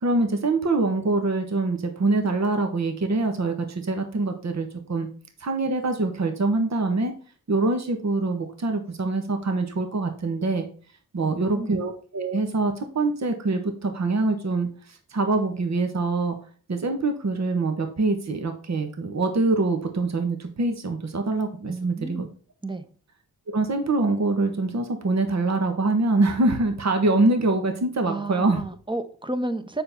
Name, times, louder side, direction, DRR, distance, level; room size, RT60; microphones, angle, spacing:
voice 1, 0.0-5.1 5.4-7.1 7.5-10.7 11.1-16.4 16.7-22.3 23.5-28.6, right 3 dB, 50° right, 1.4 m, -24 dB
voice 2, 11.2-11.7 21.7-22.3 22.6-22.8 28.0-29.8, right 2 dB, 15° right, 1.1 m, -32 dB
6.8 x 5.5 x 4.3 m
cardioid pair, 50°, 35 cm